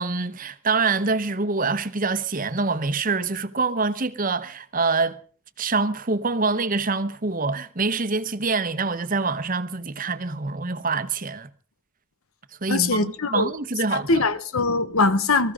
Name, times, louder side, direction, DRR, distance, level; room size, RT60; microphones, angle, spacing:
voice 1, 0.0-5.2 5.6-11.5 12.6-14.2, right 4 dB, 40° right, 1.0 m, -25 dB
voice 2, 12.7-13.5 13.9-15.5, left 3 dB, 80° left, 1.2 m, -22 dB
24.5 x 14.5 x 3.8 m
head